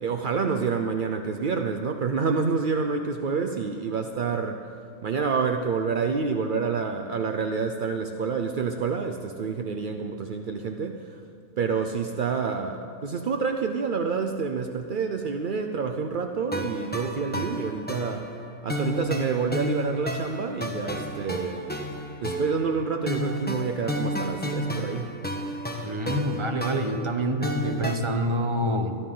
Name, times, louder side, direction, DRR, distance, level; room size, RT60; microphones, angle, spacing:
voice 1, 0.0-4.6 5.0-11.2 11.6-18.3 18.6-21.7 22.2-25.2, right 5 dB, 60° right, 5 dB, 0.5 m, -28 dB
sound 1, 16.5-28.0, equal, 5° left, 1.1 m, -32 dB
voice 2, 25.8-29.0, equal, 25° right, 4 dB, 0.9 m, -27 dB
22.5 x 13.5 x 3.8 m, 2.4 s
omnidirectional pair, 1.6 m